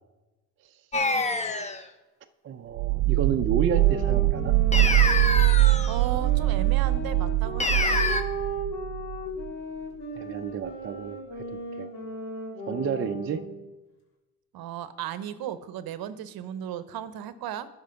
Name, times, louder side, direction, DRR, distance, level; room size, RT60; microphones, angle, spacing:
sound 1, 0.9-1.8 4.7-6.0 7.6-8.2, left 3 dB, 15° left, 0.7 m, -26 dB
voice 1, 2.4-4.5 10.1-11.4 11.8-11.9 12.7-13.4, right 7 dB, 30° right, 6 dB, 0.5 m, -30 dB
sound 2, 2.8-9.5, right 20 dB, 80° right, 0.6 m, -23 dB
sound 3, 3.7-13.6, equal, 60° left, 2.9 m, -36 dB
voice 2, 5.8-8.0 14.5-17.7, right 10 dB, 50° right, 13 dB, 0.8 m, -35 dB
11.5 x 4.5 x 5.7 m, 1.1 s
supercardioid pair, 85°, 47 cm